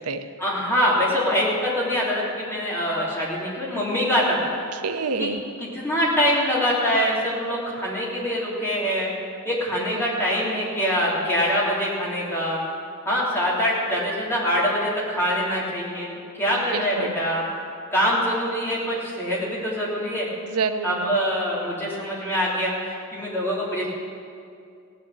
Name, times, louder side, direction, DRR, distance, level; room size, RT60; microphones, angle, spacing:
voice 1, 0.4-4.5 5.2-5.3 5.6-9.1 9.4-12.6 13.0-16.1 16.4-17.4 17.9-20.3 20.8-23.9, equal, 10° left, -7 dB, 3.3 m, -24 dB
voice 2, 4.7-5.4 9.9-10.1 16.5-17.1 20.4-21.2, right 5 dB, 90° right, 9 dB, 0.7 m, -28 dB
16.5 x 6.9 x 8.4 m, 2.4 s
head